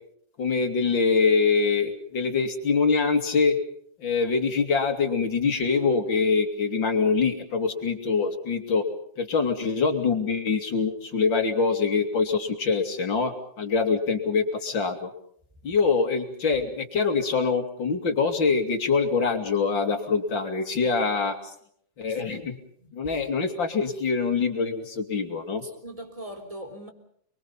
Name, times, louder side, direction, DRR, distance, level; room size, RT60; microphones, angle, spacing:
voice 1, 0.4-3.6 4.0-8.9 9.2-15.1 15.6-21.4 22.0-22.6 22.9-25.6, left 4 dB, 70° left, 3.4 m, -24 dB
voice 2, 20.6-21.0 22.1-22.4 22.8-23.3 25.6-26.9, right 1 dB, 15° right, 3.6 m, -42 dB
29.5 x 22.5 x 5.5 m
omnidirectional pair, 2.1 m